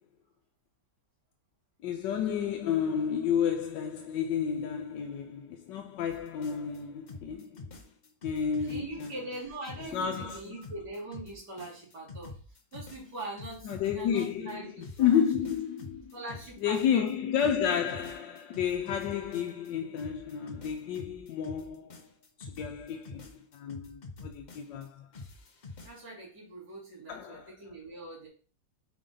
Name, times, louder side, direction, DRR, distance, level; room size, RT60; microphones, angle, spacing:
voice 1, 1.8-7.7 8.2-9.2 9.9-10.6 13.6-14.7 15.0-16.1 16.6-22.0 22.4-23.2 23.5-25.1 27.1-27.5, left 8 dB, 85° left, 1.3 m, -31 dB
sound 1, 6.1-6.8 7.1-9.4 9.6-14.5 14.8-17.1 17.4-19.7 20.0-24.9 25.1-26.0, left 3 dB, 45° left, 0.6 m, -47 dB
voice 2, 8.6-12.4 12.7-15.2 16.1-17.1 25.8-28.3, right 2 dB, 65° right, 3.5 m, -42 dB
5.9 x 5.2 x 3.8 m
omnidirectional pair, 1.9 m